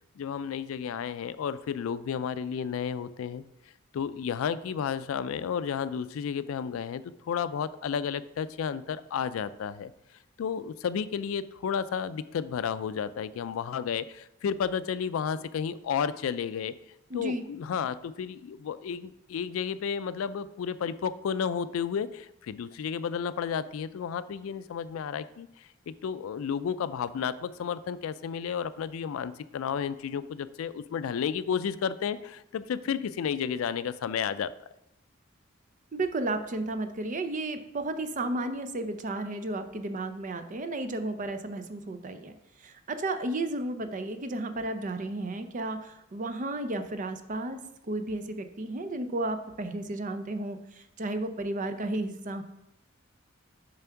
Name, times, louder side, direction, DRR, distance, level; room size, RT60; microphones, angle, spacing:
voice 1, 0.2-3.4 3.9-9.9 10.4-16.7 17.1-34.5, left 7 dB, 85° left, 15 dB, 0.3 m, -32 dB
voice 2, 17.1-17.4 35.9-42.3 42.6-47.6 47.9-52.4, right 2 dB, 40° right, 9 dB, 0.5 m, -33 dB
7.0 x 3.4 x 5.7 m, 0.84 s
head